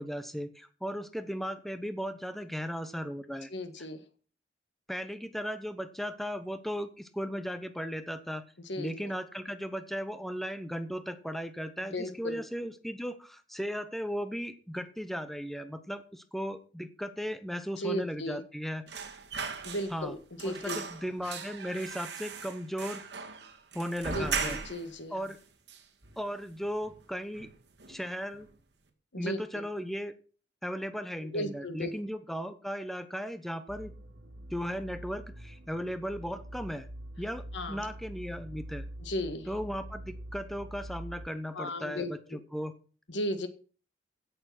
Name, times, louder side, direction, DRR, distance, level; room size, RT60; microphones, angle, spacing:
voice 1, 0.0-3.9 4.9-8.4 8.8-18.8 19.9-20.1 20.4-23.0 23.7-24.6 25.1-25.4 26.2-27.5 27.9-28.5 29.2-30.1 30.6-33.9 34.5-36.9 37.2-38.8 39.5-42.7, equal, ahead, 10 dB, 0.8 m, -36 dB
voice 2, 3.5-4.0 8.7-9.1 11.9-12.4 17.8-18.4 19.6-20.8 24.1-25.2 29.1-29.6 31.2-31.9 37.5-37.8 39.0-39.5 41.5-42.1 43.1-43.5, left 1 dB, 80° left, 9 dB, 1.8 m, -35 dB
sound 1, 18.9-20.1 20.4-24.9 25.3-25.4 25.7-26.5 26.8-27.0 27.3-28.0 28.3-28.5, right 5 dB, 65° right, 2.2 m, -38 dB
sound 2, 33.7-41.3, right 1 dB, 85° right, 2.3 m, -45 dB
16.0 x 6.9 x 6.0 m, 0.40 s
head